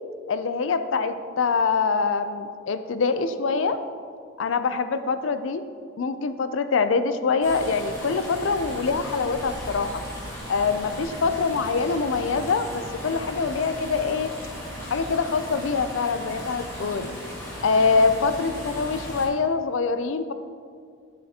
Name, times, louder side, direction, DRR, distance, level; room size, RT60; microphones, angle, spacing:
voice 1, 0.3-3.8 4.4-5.6 6.0-10.0 10.5-14.3 14.9-17.1 17.6-20.3, left 4 dB, 75° left, 10 dB, 0.4 m, -24 dB
sound 1, 7.4-19.3, equal, 15° left, 1.5 m, -36 dB
9.6 x 7.3 x 2.9 m, 2.2 s
head